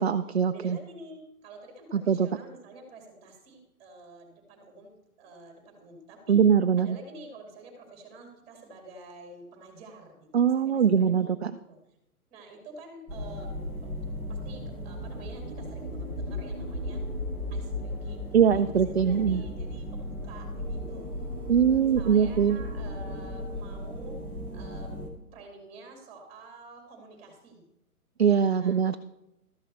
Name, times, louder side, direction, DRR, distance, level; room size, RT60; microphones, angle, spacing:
voice 1, 0.0-0.8 1.9-2.3 6.3-7.0 10.3-11.5 18.3-19.4 21.5-22.6 28.2-29.0, right 7 dB, 45° right, 8 dB, 0.5 m, -22 dB
voice 2, 0.5-4.9 5.2-6.4 6.8-11.8 12.3-13.5 13.8-13.9 14.3-17.1 17.5-21.1 21.8-24.2 24.5-25.0 25.3-27.6 28.6-28.8, right 2 dB, 15° right, 3 dB, 2.2 m, -48 dB
sound 1, 13.1-25.1, left 1 dB, 10° left, 0.9 m, -36 dB
13.5 x 6.4 x 6.8 m, 0.86 s
hypercardioid pair, 170°, 46 cm